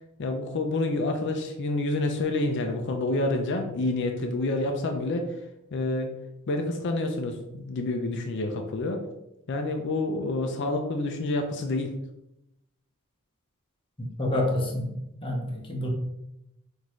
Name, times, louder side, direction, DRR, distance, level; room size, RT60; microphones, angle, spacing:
voice 1, 0.2-5.4 5.7-6.1 6.5-9.0 9.5-11.9, left 2 dB, 55° left, 4 dB, 0.5 m, -28 dB
voice 2, 14.2-15.9, left 1 dB, 25° left, -2 dB, 0.8 m, -28 dB
6.0 x 2.6 x 3.1 m, 0.85 s
head